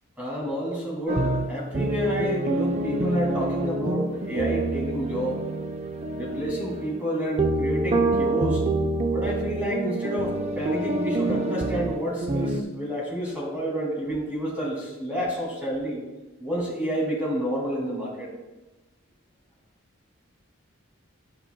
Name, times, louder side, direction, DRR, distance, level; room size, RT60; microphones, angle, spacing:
voice 1, 0.2-5.4 6.2-8.6 9.1-16.0 16.4-18.3, equal, 5° right, -5 dB, 2.3 m, -29 dB
sound 1, 1.1-12.6, right 2 dB, 30° right, 0.4 m, -27 dB
11.5 x 5.5 x 2.2 m, 1.1 s
head